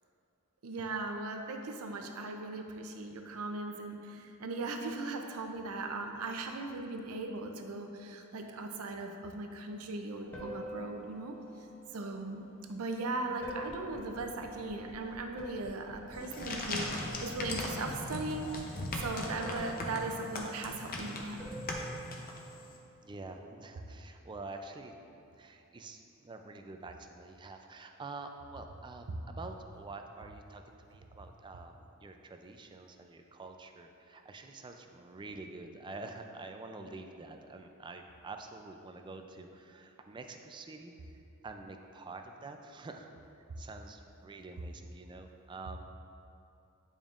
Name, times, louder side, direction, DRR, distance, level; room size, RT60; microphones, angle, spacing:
voice 1, 0.6-11.3 11.9-12.4 12.7-18.7 19.0-21.4 29.1-29.2, right 2 dB, 75° right, 4 dB, 0.6 m, -38 dB
sound 1, 10.2-23.4, equal, 10° left, 1.1 m, -48 dB
sound 2, 16.1-22.7, left 2 dB, 40° left, 0.7 m, -39 dB
voice 2, 23.0-24.9 25.4-41.2 41.4-43.1 43.3-45.8, right 3 dB, 20° right, 5 dB, 0.3 m, -47 dB
9.0 x 5.2 x 2.5 m, 2.7 s
head